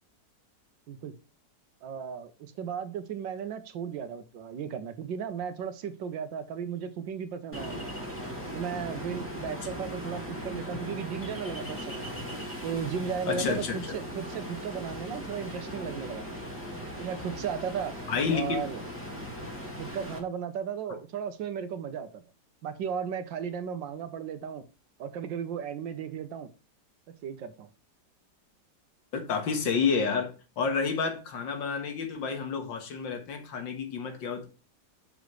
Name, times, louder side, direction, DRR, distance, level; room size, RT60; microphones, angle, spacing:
voice 1, 1.8-7.9 8.5-12.1 12.6-16.4 17.0-17.9 18.3-18.8 19.8-22.2 22.6-24.6 25.0-26.5 27.2-27.7, right 7 dB, 80° right, 1.6 m, -35 dB
Ocean, 7.5-20.2, equal, 5° left, 2.0 m, -38 dB
voice 2, 13.3-14.0 18.1-18.7 29.1-34.5, left 5 dB, 90° left, 2.2 m, -30 dB
7.1 x 6.2 x 3.2 m
omnidirectional pair, 2.0 m